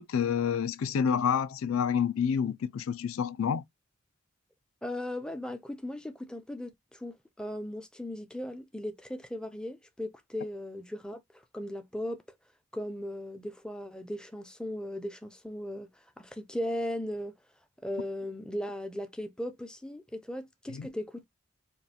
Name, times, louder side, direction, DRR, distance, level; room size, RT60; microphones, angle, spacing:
voice 1, 0.0-3.6 20.7-20.9, left 7 dB, 70° left, 0.4 m, -28 dB
voice 2, 4.8-12.2 12.7-17.3 17.8-21.2, left 1 dB, 5° left, 0.4 m, -37 dB
5.1 x 2.3 x 2.7 m
head